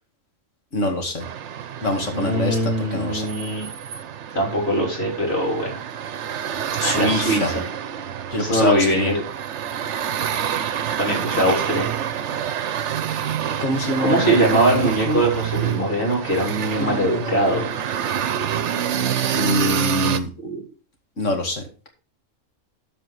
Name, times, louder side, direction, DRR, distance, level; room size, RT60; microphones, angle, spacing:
voice 1, 0.7-1.2 1.8-3.3 6.8-7.6 8.3-9.1 13.6-15.2 16.8-17.6 19.3-20.3 21.2-21.9, left 1 dB, 70° left, 3 dB, 2.5 m, -24 dB
sound 1, 1.2-20.2, right 9 dB, 65° right, 1.0 m, -27 dB
voice 2, 2.1-3.7 4.3-5.8 6.8-7.5 8.4-9.1 11.0-11.9 14.0-17.7 20.4-20.6, right 1 dB, 50° left, -1 dB, 3.6 m, -22 dB
13.5 x 4.9 x 4.8 m, 0.36 s
omnidirectional pair, 1.3 m